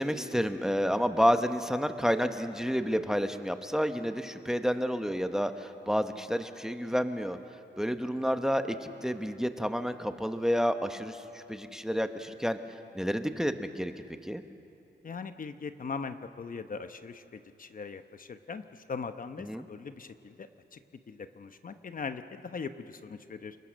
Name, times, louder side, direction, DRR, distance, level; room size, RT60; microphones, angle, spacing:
voice 1, 0.0-7.4 7.8-12.6 12.9-13.9 14.2-14.4 19.5-19.6, equal, 5° right, 8 dB, 0.9 m, -30 dB
voice 2, 15.0-20.8 21.1-23.6, left 5 dB, 50° left, 9 dB, 0.9 m, -40 dB
29.5 x 21.5 x 6.4 m, 2.7 s
wide cardioid pair, 110°, 19 cm